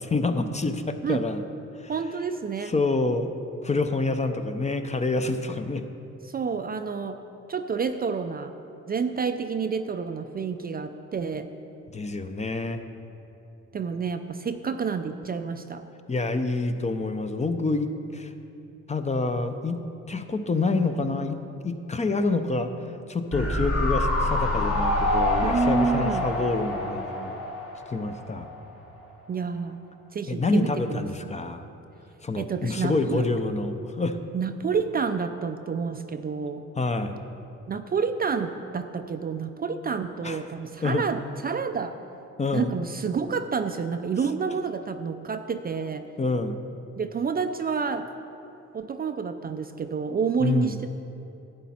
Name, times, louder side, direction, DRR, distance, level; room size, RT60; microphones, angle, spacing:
voice 1, 0.0-1.4 1.8-1.9 2.7-3.3 3.6-5.8 11.9-12.8 16.1-18.3 18.9-22.7 23.1-27.4 27.9-28.5 30.3-31.6 32.2-34.2 36.8-37.2 40.2-40.4 40.8-41.0 42.4-42.7 46.2-46.6 50.4-50.8, left 3 dB, 25° left, 8 dB, 0.6 m, -27 dB
voice 2, 1.9-2.7 6.2-7.2 7.5-8.5 8.9-11.5 13.7-15.8 25.4-26.3 29.3-29.8 30.1-31.1 32.4-33.3 34.3-36.6 37.7-42.0 42.5-46.0 47.0-48.1 48.7-50.9, right 5 dB, 30° right, 8 dB, 0.4 m, -29 dB
sound 1, 23.3-28.6 28.8-28.9, left 1 dB, 50° left, 1.7 m, -26 dB
11.5 x 8.3 x 4.3 m, 2.8 s
cardioid pair, 90°, 30 cm